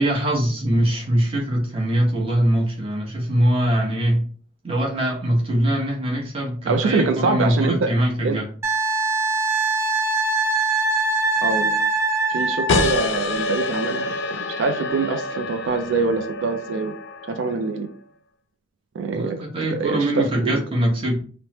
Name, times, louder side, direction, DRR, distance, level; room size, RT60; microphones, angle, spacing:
voice 1, 0.0-4.2 4.6-8.4 19.1-21.2, right 1 dB, 30° right, -2 dB, 0.9 m, -22 dB
voice 2, 6.7-7.9 8.2-8.4 11.4-11.8 12.3-16.9 17.3-17.9 18.9-19.4 19.7-20.6, right 4 dB, 85° right, 7 dB, 0.4 m, -24 dB
Wind instrument woodwind instrument, 8.6-12.9 15.6-15.7, right 3 dB, 15° right, 0.4 m, -22 dB
sound 1, 12.7-17.9, left 2 dB, 75° left, 0.4 m, -27 dB
3.1 x 2.1 x 2.8 m, 0.43 s
head